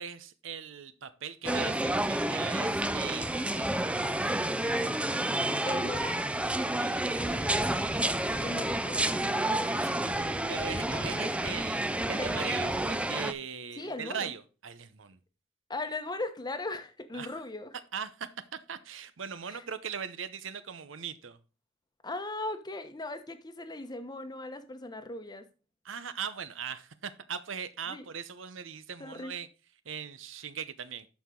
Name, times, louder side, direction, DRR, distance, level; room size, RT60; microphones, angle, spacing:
voice 1, 0.0-5.3 6.6-7.7 8.1-8.6 9.5-15.2 17.1-17.3 17.9-21.4 25.8-29.5 29.8-31.1, right 7 dB, 85° right, 0.8 m, -40 dB
sound 1, 1.4-13.3, right 1 dB, 5° right, 0.5 m, -30 dB
voice 2, 5.6-6.2 8.4-9.2 12.1-12.5 13.8-14.3 15.7-17.7 19.5-19.6 22.0-25.4 27.9-28.0 29.0-29.3, left 2 dB, 20° left, 1.0 m, -38 dB
12.5 x 4.7 x 3.8 m
head